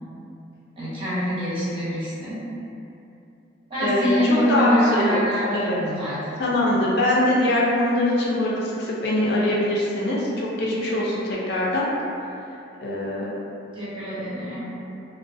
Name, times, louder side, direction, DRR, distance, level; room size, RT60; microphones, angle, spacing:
voice 1, 0.8-2.4 3.7-6.4 13.7-14.7, equal, 25° right, -11 dB, 0.6 m, -25 dB
voice 2, 3.8-5.2 5.5-5.8 6.4-11.9 12.8-13.2, left 1 dB, 55° left, -5 dB, 0.4 m, -23 dB
2.4 x 2.2 x 2.4 m, 2.8 s
head